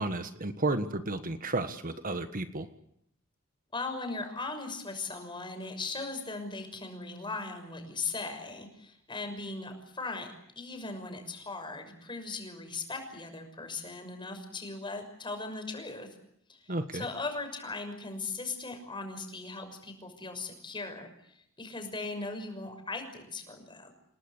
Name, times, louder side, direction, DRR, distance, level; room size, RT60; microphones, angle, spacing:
voice 1, 0.0-2.7 16.7-17.0, right 2 dB, 40° right, 9 dB, 1.5 m, -32 dB
voice 2, 3.7-16.1 16.5-23.9, left 3 dB, 25° left, 6 dB, 6.2 m, -38 dB
29.0 x 19.5 x 8.4 m, 0.73 s
head